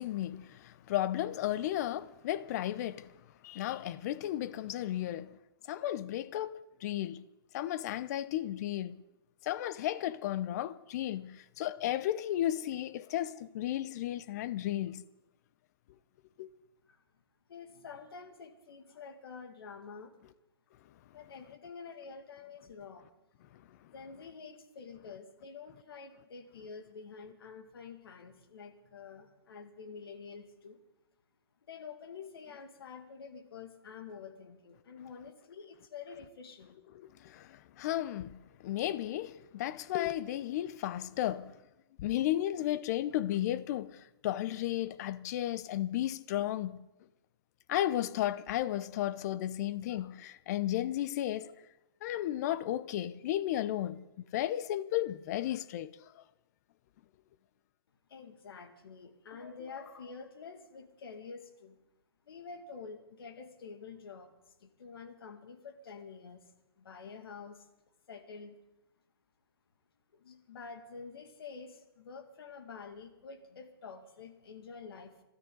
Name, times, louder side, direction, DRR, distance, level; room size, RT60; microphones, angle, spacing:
voice 1, 0.0-3.1 3.4-5.3 5.7-7.2 7.5-9.0 9.4-15.0 16.4-16.5 36.9-41.6 42.0-46.8 47.7-51.5 52.0-56.2, left 13 dB, 40° left, 0.8 m, -34 dB
voice 2, 17.5-20.2 21.1-23.1 23.9-30.8 31.7-36.8 58.1-61.8 62.2-64.3 64.6-66.5 66.8-67.7 68.1-68.6 70.1-75.2, left 5 dB, 65° left, 2.3 m, -48 dB
27.0 x 13.0 x 4.0 m
hypercardioid pair, 140°, 13 cm